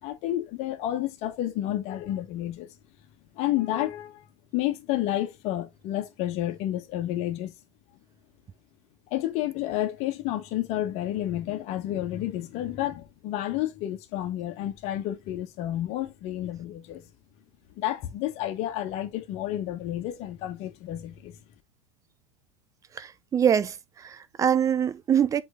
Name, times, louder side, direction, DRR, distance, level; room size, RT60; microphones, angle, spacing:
voice 1, 0.0-2.7 3.3-4.2 4.5-7.5 9.1-17.1 17.8-21.4, left 13 dB, 40° left, 1.6 m, -30 dB
voice 2, 22.9-25.4, right 8 dB, 20° right, 0.6 m, -24 dB
8.0 x 3.9 x 3.7 m
figure-of-eight pair, 95°, 16 cm